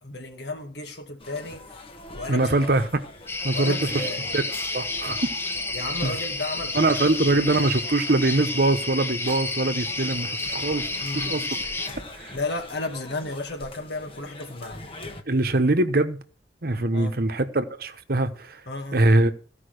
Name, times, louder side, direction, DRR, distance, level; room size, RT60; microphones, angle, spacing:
voice 1, 0.0-1.8 2.1-2.5 3.5-4.3 5.7-6.9 10.9-11.5 12.3-14.8 16.9-17.2 18.7-19.0, left 2 dB, 70° left, 2.1 m, -33 dB
sound 1, 1.2-15.2, left 1 dB, 30° left, 1.4 m, -43 dB
voice 2, 2.3-3.0 3.4-4.0 4.3-4.4 4.7-5.2 6.0-6.1 6.7-10.8 11.1-11.4 12.2-12.3 15.3-16.2 16.6-18.6 18.9-19.3, right 2 dB, 55° right, 1.1 m, -23 dB
sound 2, 3.3-11.9, left 2 dB, 15° left, 0.9 m, -30 dB
15.0 x 5.4 x 6.5 m
head